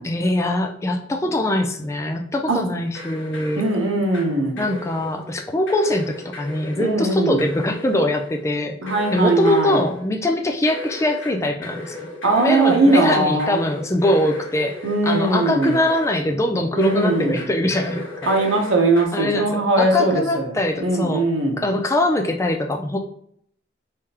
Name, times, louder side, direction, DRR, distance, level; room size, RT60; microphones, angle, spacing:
voice 1, 0.0-3.7 4.3-8.8 9.1-12.0 12.4-18.3 19.1-21.2 21.6-23.0, left 1 dB, 15° left, 3 dB, 0.3 m, -22 dB
sound 1, 2.9-4.3 4.6-5.3 5.7-7.0 7.4-8.4 8.9-10.0 10.6-16.3 16.8-19.1, left 2 dB, 75° left, 1.0 m, -36 dB
voice 2, 3.6-4.6 6.8-7.4 8.8-9.8 12.2-13.6 14.8-15.8 16.8-17.4 18.3-21.6, right 2 dB, 90° right, 2 dB, 0.8 m, -20 dB
3.5 x 3.3 x 2.9 m, 0.68 s
head